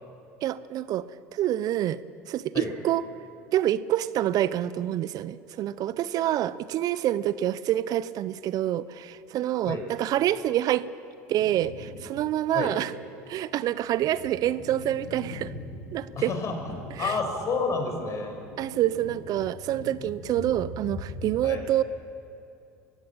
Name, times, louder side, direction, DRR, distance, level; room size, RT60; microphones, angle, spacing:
voice 1, 0.4-2.0 2.3-3.1 3.5-10.9 11.3-12.9 13.3-15.5 15.9-16.3 16.9-17.2 18.6-21.8, right 12 dB, 50° right, 17 dB, 0.6 m, -27 dB
sound 1, 11.3-12.2 12.6-12.7 13.4-21.3, left 2 dB, 70° left, 4.5 m, -42 dB
voice 2, 16.2-18.4 21.4-21.6, left 4 dB, 40° left, 4 dB, 5.7 m, -30 dB
22.5 x 17.0 x 8.9 m, 2.7 s
hypercardioid pair, 75°, 8 cm